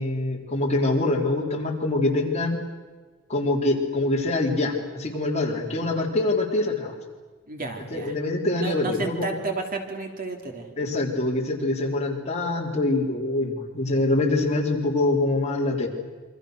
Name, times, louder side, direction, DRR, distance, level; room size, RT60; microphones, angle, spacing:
voice 1, 0.0-2.6 3.3-6.9 7.9-9.3 10.8-15.9, left 2 dB, 35° left, -1 dB, 4.2 m, -24 dB
voice 2, 7.5-8.2 8.6-10.7, right 3 dB, 45° right, 3 dB, 3.2 m, -32 dB
28.0 x 25.0 x 6.6 m, 1.3 s
head